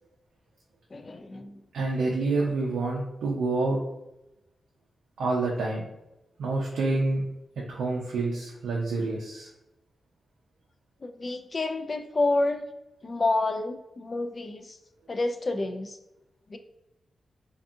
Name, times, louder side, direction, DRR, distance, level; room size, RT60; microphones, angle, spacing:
voice 1, 0.9-1.6 11.0-12.7 13.0-14.8 15.1-16.0 16.5-16.6, left 2 dB, 45° left, 8 dB, 0.3 m, -29 dB
voice 2, 1.7-3.8 5.2-5.8 6.4-7.2 7.6-9.5, right 3 dB, 90° right, -2 dB, 0.4 m, -27 dB
2.6 x 2.3 x 2.6 m, 0.91 s
cardioid pair, 60°, 0 cm